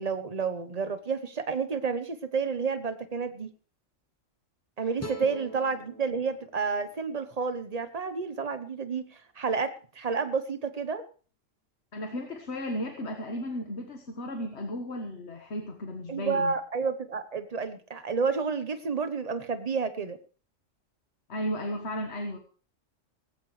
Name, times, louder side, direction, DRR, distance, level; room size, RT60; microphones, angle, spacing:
voice 1, 0.0-3.5 4.8-11.0 16.1-20.2, right 5 dB, 35° right, 11 dB, 1.0 m, -30 dB
sound 1, 5.0-8.2, equal, 15° left, 0.6 m, -45 dB
voice 2, 11.9-16.5 21.3-22.4, equal, 60° left, 4 dB, 1.8 m, -34 dB
17.5 x 15.5 x 3.3 m, 0.40 s
omnidirectional pair, 1.3 m